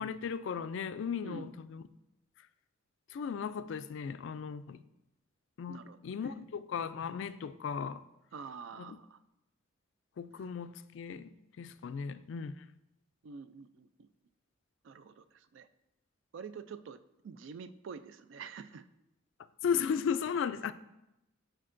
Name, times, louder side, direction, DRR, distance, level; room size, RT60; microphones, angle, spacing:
voice 1, 0.0-1.8 2.4-2.5 3.1-4.8 5.6-5.8 6.0-8.0 8.8-9.0 10.2-12.7 19.6-20.7, left 6 dB, 60° left, 0.3 m, -36 dB
voice 2, 5.7-6.0 8.3-9.2 10.4-10.5 13.2-14.1 14.8-15.7 16.3-18.9, right 5 dB, 65° right, 0.3 m, -47 dB
12.0 x 4.4 x 2.5 m
head